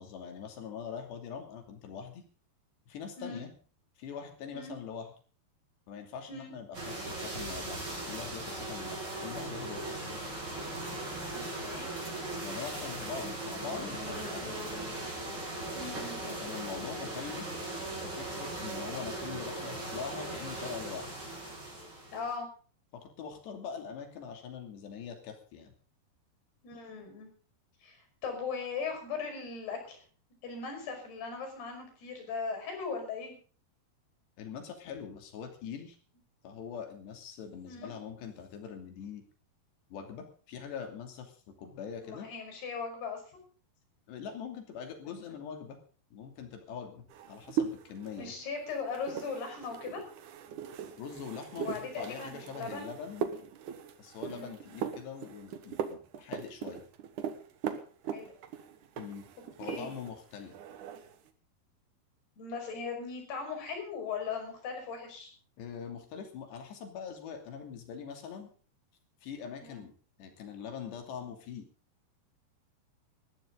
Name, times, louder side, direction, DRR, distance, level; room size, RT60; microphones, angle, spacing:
voice 1, 0.0-2.2 2.9-3.5 4.0-5.1 5.9-7.8 8.1-10.2 12.4-14.8 16.4-17.6 18.0-21.1 22.9-25.7 34.4-36.0 36.4-39.2 39.9-42.3 44.1-45.8 46.1-48.3 51.0-53.3 54.0-56.8 59.0-59.3 59.6-60.5 65.6-68.5 69.2-69.9 70.2-71.7, left 7 dB, 90° left, 5 dB, 4.9 m, -43 dB
sound 1, 6.7-22.3, right 2 dB, 25° right, 7.0 m, -38 dB
voice 2, 11.3-11.9 15.7-16.7 22.1-22.5 26.6-27.3 27.8-30.0 30.4-33.3 37.7-37.9 42.0-43.2 45.1-45.4 48.2-50.0 51.6-52.9 54.2-54.5 58.1-58.3 59.7-59.9 62.4-65.3 69.7-69.8, left 5 dB, 75° left, 4 dB, 7.4 m, -39 dB
sound 2, 47.1-60.2 60.5-61.2, right 8 dB, 60° right, 2.4 m, -39 dB
20.0 x 14.5 x 3.9 m, 0.40 s
omnidirectional pair, 4.7 m